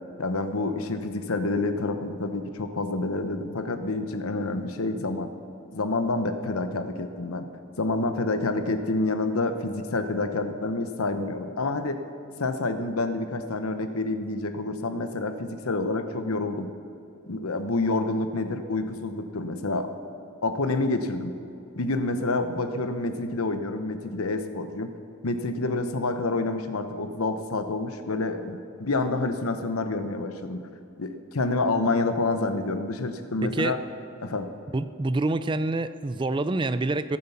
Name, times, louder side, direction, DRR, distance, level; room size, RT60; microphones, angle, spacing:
voice 1, 0.2-5.3 5.7-7.5 7.8-12.0 12.4-16.7 17.3-19.9 20.4-21.3 21.7-30.7 31.0-33.8 34.2-34.5, left 2 dB, 90° left, 8 dB, 1.0 m, -28 dB
voice 2, 33.4-33.8 34.7-37.2, right 2 dB, 20° right, 13 dB, 0.3 m, -27 dB
22.0 x 7.5 x 5.8 m, 2.7 s
head